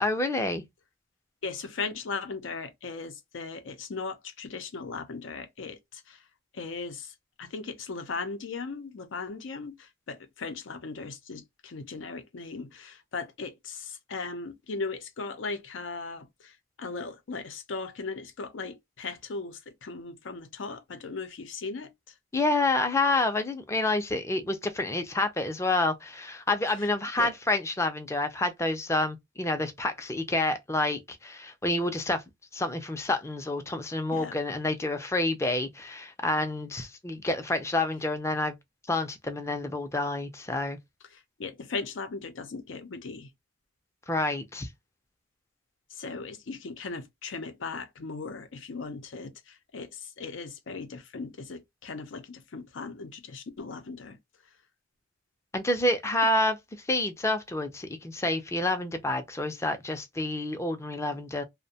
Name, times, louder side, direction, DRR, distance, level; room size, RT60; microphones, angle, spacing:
voice 1, 0.0-0.6 22.3-32.2 32.5-38.5 38.9-40.8 44.1-44.7 55.5-56.6 56.9-61.4, left 2 dB, 15° left, 0.4 m, -28 dB
voice 2, 1.4-6.3 6.5-22.1 26.7-26.9 27.2-27.3 34.1-34.4 41.1-43.3 45.9-54.2, left 4 dB, 90° left, 0.6 m, -38 dB
2.5 x 2.1 x 2.7 m
head